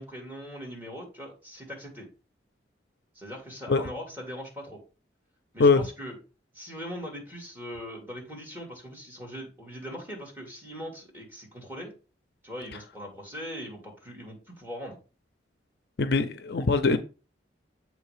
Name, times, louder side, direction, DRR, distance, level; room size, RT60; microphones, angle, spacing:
voice 1, 0.0-2.1 3.1-4.8 5.5-6.2 6.5-11.9 12.4-15.0, equal, 10° right, 2.0 m, -40 dB
voice 2, 16.0-17.0, left 4 dB, 55° left, 0.5 m, -22 dB
7.5 x 3.2 x 4.8 m
head